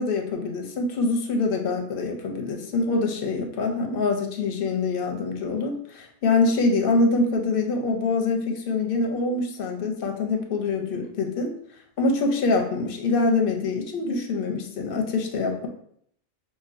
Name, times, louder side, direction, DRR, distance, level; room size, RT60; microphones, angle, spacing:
voice 1, 0.0-11.5 12.0-15.7, left 3 dB, 60° left, 3 dB, 0.7 m, -25 dB
5.0 x 2.2 x 2.5 m, 0.67 s
omnidirectional pair, 1.2 m